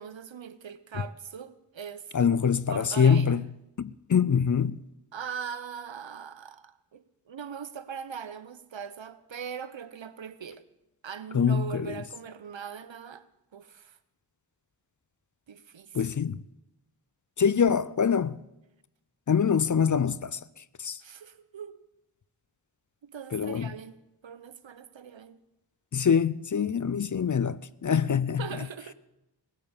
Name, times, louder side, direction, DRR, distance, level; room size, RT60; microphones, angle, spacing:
voice 1, 0.0-2.4 2.7-3.4 5.1-10.6 11.0-13.3 13.5-14.0 15.5-16.0 21.0-21.8 23.0-24.0 24.2-25.4 28.4-28.9, right 7 dB, 75° right, 0.9 m, -41 dB
voice 2, 2.1-3.5 3.8-4.8 11.3-12.0 15.9-16.4 17.4-18.4 19.3-21.0 23.3-23.7 25.9-28.7, left 7 dB, 45° left, 0.5 m, -25 dB
18.5 x 8.3 x 7.1 m
wide cardioid pair, 55°, 45 cm